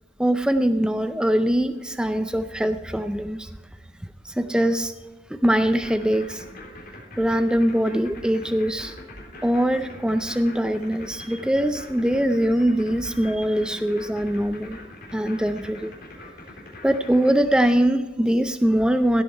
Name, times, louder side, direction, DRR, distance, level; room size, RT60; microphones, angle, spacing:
voice 1, 0.2-3.5 4.2-4.9 5.3-6.4 7.2-8.9 9.4-14.8 15.1-15.9 16.8-19.2, equal, 5° right, 9 dB, 0.4 m, -22 dB
sound 1, 5.5-17.3, left 2 dB, 55° left, 3.5 m, -42 dB
16.0 x 8.4 x 4.7 m, 1.1 s
head